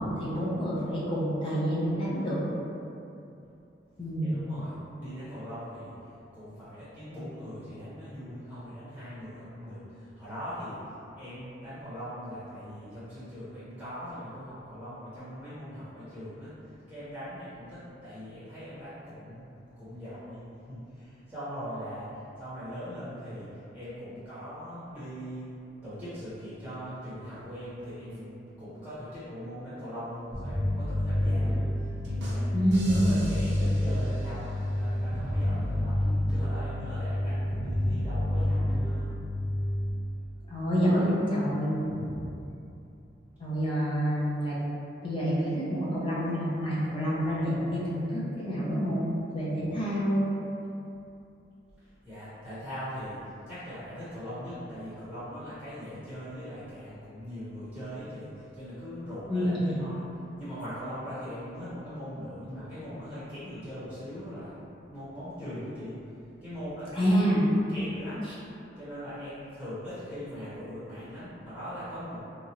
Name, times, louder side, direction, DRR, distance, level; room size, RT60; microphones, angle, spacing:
voice 1, 0.0-2.4 4.0-4.4 32.5-33.2 40.5-42.1 43.4-44.6 45.0-49.1 49.3-50.3 59.3-59.8 66.9-67.4, equal, 30° left, -8 dB, 0.6 m, -27 dB
voice 2, 4.2-25.5 25.8-32.5 32.8-39.2 51.8-60.1 60.4-67.2 67.7-68.3 68.8-72.2, equal, 5° right, -14 dB, 1.0 m, -41 dB
Bass guitar, 30.3-39.9, left 1 dB, 35° right, 0.7 m, -28 dB
sound 1, 32.0-34.9, right 1 dB, 65° right, 0.5 m, -45 dB
3.0 x 2.4 x 2.8 m, 2.7 s
head